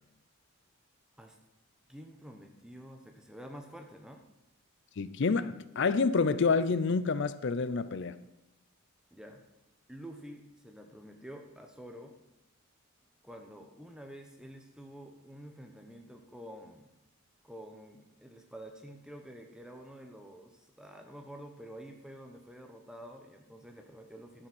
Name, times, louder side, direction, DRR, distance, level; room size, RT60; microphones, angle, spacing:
voice 1, 1.9-4.2 9.1-9.5 9.9-12.2 13.2-16.9 17.4-24.5, equal, 5° right, 0.9 m, -49 dB
voice 2, 5.0-8.2, left 4 dB, 55° left, 0.5 m, -28 dB
11.5 x 7.3 x 6.1 m
head